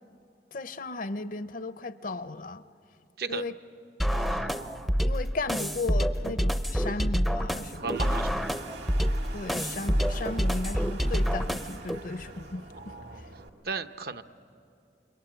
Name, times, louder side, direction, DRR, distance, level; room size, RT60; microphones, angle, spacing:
voice 1, 0.5-2.6 3.3-3.6 5.0-7.9 9.3-13.3, left 3 dB, 50° left, 13 dB, 0.7 m, -35 dB
sound 1, 4.0-12.0, equal, ahead, 0.5 m, -27 dB
voice 2, 4.1-4.9 7.8-8.5 12.7-13.2 13.6-14.2, right 4 dB, 60° right, 9 dB, 0.8 m, -36 dB
Toilet flush, 7.4-13.5, right 2 dB, 75° right, 2.0 m, -43 dB
29.0 x 23.0 x 9.0 m, 2.6 s
head